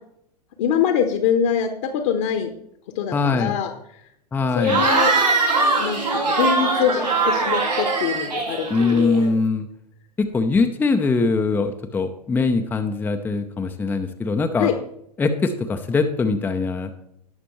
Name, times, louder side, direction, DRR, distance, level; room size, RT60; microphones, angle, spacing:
voice 1, 0.6-2.5 2.9-3.7 4.5-5.1 5.8-6.0 6.3-9.4 14.6-14.7, left 8 dB, 45° left, 5 dB, 1.1 m, -23 dB
voice 2, 3.1-3.6 4.3-4.8 8.7-9.7 10.2-14.7 15.2-16.9, left 4 dB, 10° left, 6 dB, 0.6 m, -22 dB
Cheering / Crowd, 4.6-9.2, right 3 dB, 85° right, 4.1 m, -21 dB
18.0 x 6.1 x 3.1 m, 0.75 s
figure-of-eight pair, 100°, 21 cm